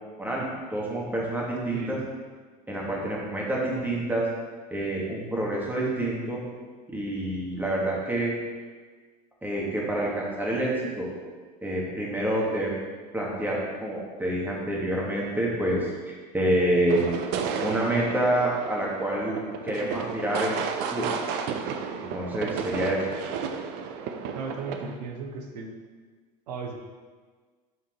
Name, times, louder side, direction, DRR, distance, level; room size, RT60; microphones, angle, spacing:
voice 1, 0.7-2.0 2.7-4.3 4.7-6.4 6.9-8.3 9.4-11.1 11.6-12.8 13.1-17.1 17.6-20.6 20.9-21.1 22.1-23.1, right 1 dB, 10° right, -4 dB, 2.0 m, -27 dB
voice 2, 1.7-2.1 24.3-25.8 26.5-26.7, right 4 dB, 75° right, 2 dB, 1.1 m, -35 dB
sound 1, 16.9-25.0, right 6 dB, 55° right, 0.7 m, -33 dB
6.4 x 4.5 x 4.6 m, 1.5 s
hypercardioid pair, 90°, 21 cm